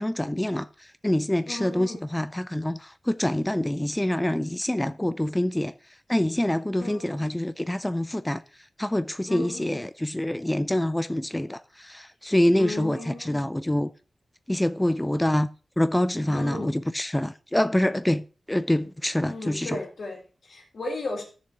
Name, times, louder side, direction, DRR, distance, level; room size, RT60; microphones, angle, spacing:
voice 1, 0.0-5.7 6.1-8.4 8.8-13.9 14.5-15.5 15.8-19.8, left 1 dB, 10° left, 0.3 m, -26 dB
voice 2, 1.5-2.0 6.8-7.3 9.3-9.8 12.6-13.4 16.3-16.7 19.2-21.2, left 2 dB, 75° left, 2.8 m, -35 dB
13.5 x 6.8 x 2.9 m
wide cardioid pair, 80°, 0 cm